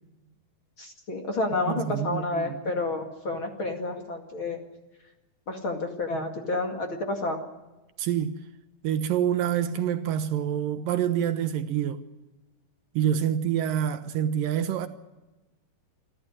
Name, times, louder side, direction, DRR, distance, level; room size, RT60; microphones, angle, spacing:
voice 1, 0.8-4.6 5.5-7.4, left 2 dB, 40° left, 2.5 m, -30 dB
voice 2, 1.7-2.6 8.0-8.4 8.8-12.0 13.0-14.9, right 9 dB, 75° right, 2.4 m, -27 dB
28.5 x 12.5 x 9.8 m
omnidirectional pair, 4.3 m